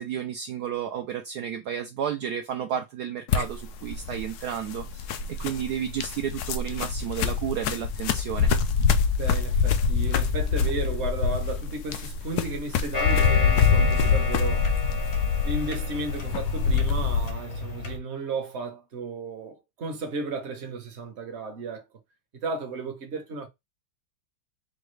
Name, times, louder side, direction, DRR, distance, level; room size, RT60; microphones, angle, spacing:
voice 1, 0.0-8.5, right 9 dB, 85° right, 0.8 m, -32 dB
sound 1, 3.3-17.3, left 6 dB, 90° left, 0.8 m, -25 dB
voice 2, 9.2-14.7 15.4-21.8 22.3-23.5, right 3 dB, 50° right, 0.8 m, -34 dB
sound 2, 12.9-18.0, left 4 dB, 55° left, 0.8 m, -32 dB
5.2 x 2.3 x 3.2 m
omnidirectional pair, 2.3 m